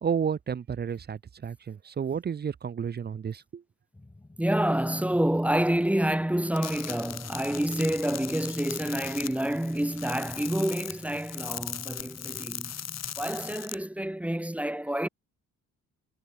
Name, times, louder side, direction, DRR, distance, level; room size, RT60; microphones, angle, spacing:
voice 1, 0.0-3.6, right 7 dB, 35° right, 0.7 m, -31 dB
sound 1, 3.9-13.6, left 2 dB, 15° left, 4.0 m, -51 dB
voice 2, 4.4-12.7 13.2-15.1, right 1 dB, 5° right, 1.3 m, -28 dB
sound 2, 6.6-13.7, left 9 dB, 60° left, 2.6 m, -39 dB
cardioid pair, 90°, 30 cm